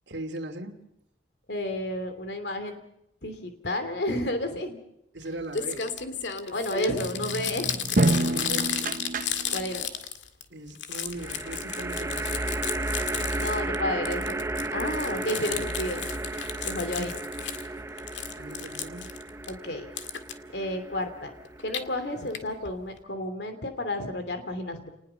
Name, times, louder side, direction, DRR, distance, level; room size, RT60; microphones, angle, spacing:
voice 1, 0.1-0.8 5.1-5.9 8.2-9.0 10.5-12.5 17.0-17.1 18.4-19.1, right 1 dB, 70° right, 4 dB, 2.9 m, -39 dB
voice 2, 1.5-2.8 3.2-4.8 6.5-7.8 9.5-9.9 13.3-14.4 14.7-16.1 16.6-17.2 19.5-19.9 20.5-21.3 21.6-24.9, left 1 dB, 65° left, 8 dB, 3.0 m, -31 dB
Crumpling crinkling, 5.2-5.3 5.5-10.4 10.7-13.8 14.1-17.7 18.0-19.5 20.0-20.3 21.5-21.8 22.3-22.4 22.7-22.8 23.0-23.1, left 7 dB, 85° left, 2.0 m, -33 dB
sound 1, 6.9-9.9, right 2 dB, 50° right, 1.0 m, -28 dB
sound 2, 8.1-8.7 11.2-22.6, right 2 dB, 15° right, 0.8 m, -34 dB
30.0 x 20.0 x 5.8 m, 0.79 s
head